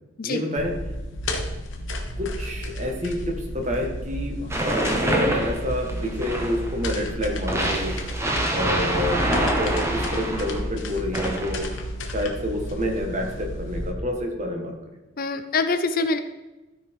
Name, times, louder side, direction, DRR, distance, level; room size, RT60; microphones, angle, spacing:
voice 1, 0.2-0.7 2.2-8.0 8.5-11.7 12.1-14.7, equal, 35° right, 2 dB, 1.8 m, -28 dB
sound 1, 0.6-13.9, left 1 dB, 70° left, 1.3 m, -32 dB
sound 2, 4.5-6.7 7.5-10.6 11.1-11.7, right 1 dB, 15° right, 1.3 m, -26 dB
voice 2, 15.2-16.2, left 3 dB, 45° left, 9 dB, 0.6 m, -24 dB
12.5 x 5.6 x 4.7 m, 1.1 s
head